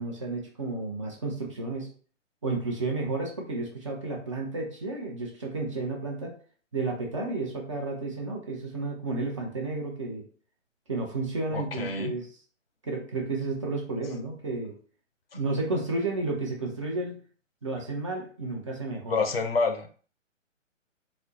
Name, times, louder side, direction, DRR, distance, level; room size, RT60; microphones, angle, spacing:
voice 1, 0.0-1.9 2.4-6.3 6.7-10.2 10.9-12.3 12.8-14.7 15.3-17.2 17.6-19.2, right 3 dB, 25° right, 0 dB, 0.6 m, -32 dB
voice 2, 11.5-12.1 19.1-19.9, left 4 dB, 50° left, 6 dB, 0.6 m, -27 dB
4.2 x 2.0 x 3.7 m, 0.42 s
figure-of-eight pair, 135°, 38 cm